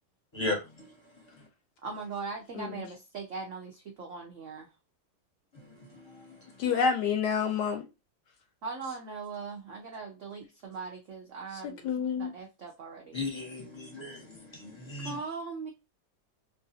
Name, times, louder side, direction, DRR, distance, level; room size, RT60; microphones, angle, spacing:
voice 1, 0.3-1.3 5.5-6.7 13.1-15.2, left 2 dB, 20° left, 0.7 m, -37 dB
voice 2, 1.8-4.7 8.6-13.2 15.0-15.7, right 4 dB, 75° right, 0.6 m, -40 dB
voice 3, 6.6-7.8 11.8-12.3, left 6 dB, 70° left, 1.1 m, -28 dB
3.1 x 2.5 x 2.6 m
omnidirectional pair, 2.0 m